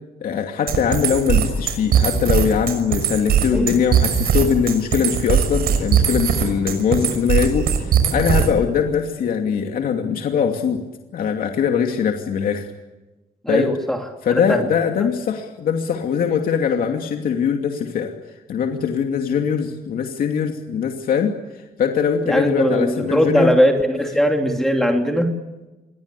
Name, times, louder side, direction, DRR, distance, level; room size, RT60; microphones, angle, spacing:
voice 1, 0.2-10.8 11.1-12.7 13.5-13.7 14.2-18.1 18.5-23.5, left 7 dB, 70° left, 3 dB, 2.7 m, -21 dB
sound 1, 0.7-8.7, right 8 dB, 85° right, 6.3 m, -19 dB
voice 2, 13.4-14.7 22.3-25.4, equal, 5° left, 2 dB, 3.0 m, -19 dB
27.5 x 23.5 x 8.4 m, 1.1 s
cardioid pair, 120°, 15 cm